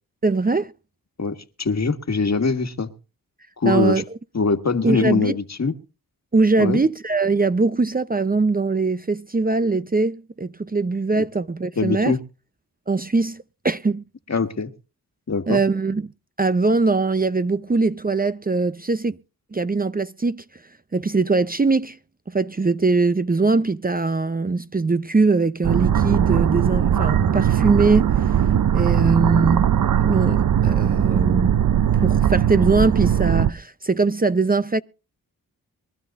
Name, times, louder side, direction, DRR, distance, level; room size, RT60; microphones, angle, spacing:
voice 1, 0.2-0.7 3.6-4.0 4.8-5.4 6.3-12.2 12.9-14.0 15.5-16.0 16.4-19.2 19.5-20.4 20.9-22.0 22.3-28.4 28.7-29.7 30.0-31.6 32.0-34.8, right 3 dB, 25° right, 0.7 m, -21 dB
voice 2, 1.2-2.9 3.6-4.0 4.3-5.7 6.6-6.8 11.8-12.2 14.3-14.7 15.3-15.6, left 4 dB, 45° left, 1.9 m, -22 dB
sound 1, 25.6-33.5, right 9 dB, 60° right, 0.7 m, -19 dB
23.5 x 12.5 x 2.6 m
cardioid pair, 45°, 37 cm